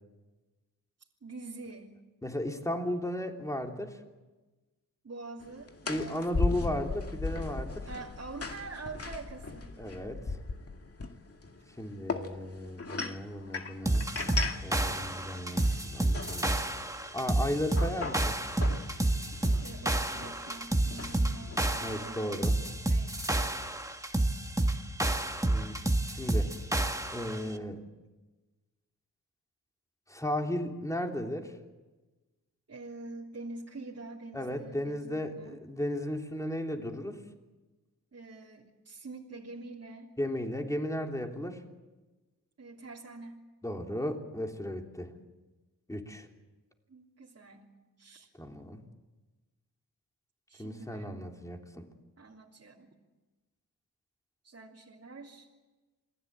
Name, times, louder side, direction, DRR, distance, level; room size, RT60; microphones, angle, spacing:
voice 1, 1.2-2.0 5.0-6.9 7.8-9.8 19.6-23.1 32.7-35.6 38.1-40.1 42.6-43.5 46.9-47.7 48.0-48.3 50.5-51.2 52.2-52.9 54.4-55.5, right 3 dB, 45° right, -3 dB, 3.2 m, -46 dB
voice 2, 2.2-4.0 5.9-7.9 9.8-10.4 11.8-14.1 14.6-16.5 17.1-18.4 21.8-22.6 25.4-25.8 26.1-26.5 27.1-27.8 30.1-31.5 34.3-37.2 40.2-41.6 43.6-45.1 45.9-46.3 48.3-48.8 50.6-51.9, left 1 dB, 10° left, 3 dB, 3.3 m, -35 dB
sound 1, 5.4-22.1, left 3 dB, 40° left, 2.2 m, -39 dB
sound 2, 13.8-27.4, right 1 dB, 10° right, 1.9 m, -29 dB
28.5 x 20.0 x 9.0 m, 1.2 s
wide cardioid pair, 95°, 35 cm